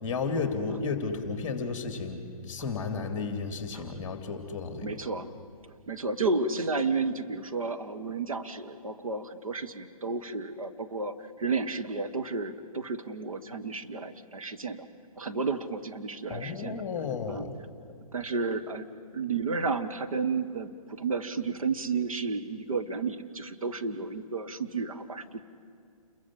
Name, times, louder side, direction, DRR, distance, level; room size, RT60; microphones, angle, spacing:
voice 1, 0.0-2.2 2.5-4.9 16.3-17.5, left 4 dB, 15° left, 6 dB, 2.8 m, -33 dB
voice 2, 4.8-5.3 5.9-14.9 15.2-16.8 17.3-17.5 18.1-18.9 19.1-25.4, right 4 dB, 65° right, 6 dB, 1.5 m, -32 dB
29.0 x 23.0 x 7.5 m, 2.5 s
figure-of-eight pair, 135°, 19 cm